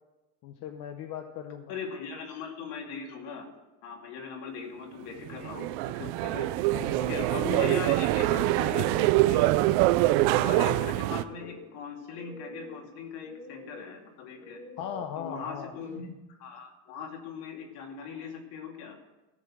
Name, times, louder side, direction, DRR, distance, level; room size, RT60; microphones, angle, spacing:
voice 1, 0.4-1.7 6.7-7.0 14.8-15.7, left 8 dB, 50° left, 6 dB, 0.9 m, -38 dB
voice 2, 1.7-3.5 3.8-5.7 6.0-6.5 7.0-9.5 10.0-14.6 15.2-19.0, left 5 dB, 70° left, 2 dB, 2.6 m, -39 dB
sound 1, 5.3-11.2, right 16 dB, 65° right, 0.6 m, -25 dB
sound 2, 11.0-16.0, left 1 dB, 20° left, 1.1 m, -49 dB
14.0 x 6.8 x 7.5 m, 1.1 s
cardioid pair, 170°, 40 cm